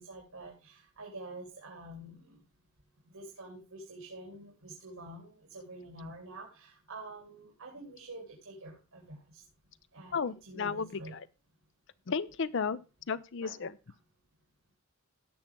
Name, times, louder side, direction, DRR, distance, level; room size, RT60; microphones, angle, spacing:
voice 1, 0.0-2.4 3.1-9.4 9.9-10.2 10.5-11.1 13.4-13.5, right 2 dB, 80° right, -2 dB, 3.5 m, -47 dB
voice 2, 10.1-11.3 12.1-12.8 13.1-13.8, left 5 dB, 60° left, 15 dB, 0.6 m, -33 dB
17.5 x 6.0 x 3.7 m, 0.30 s
head